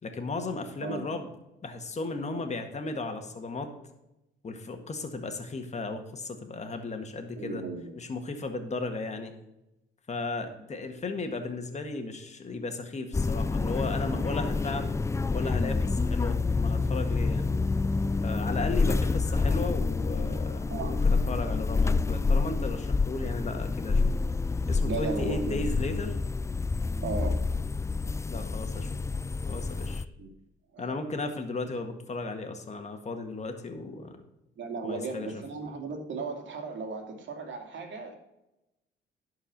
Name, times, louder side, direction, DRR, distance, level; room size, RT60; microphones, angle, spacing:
voice 1, 0.0-1.3 1.6-3.7 4.4-7.6 8.0-9.3 10.1-14.9 15.3-17.4 18.2-24.0 24.7-26.1 28.3-29.0 29.4-30.0 30.8-34.2 34.8-35.3, left 3 dB, 35° left, 6 dB, 1.8 m, -35 dB
voice 2, 7.3-7.9 20.7-21.0 24.8-25.7 27.0-27.5 30.2-30.3 30.7-30.9 34.6-38.2, right 3 dB, 70° right, 3 dB, 2.4 m, -35 dB
sound 1, 13.1-30.1, left 3 dB, 15° left, 0.3 m, -28 dB
11.5 x 4.8 x 5.9 m, 0.93 s
cardioid pair, 90°, 20 cm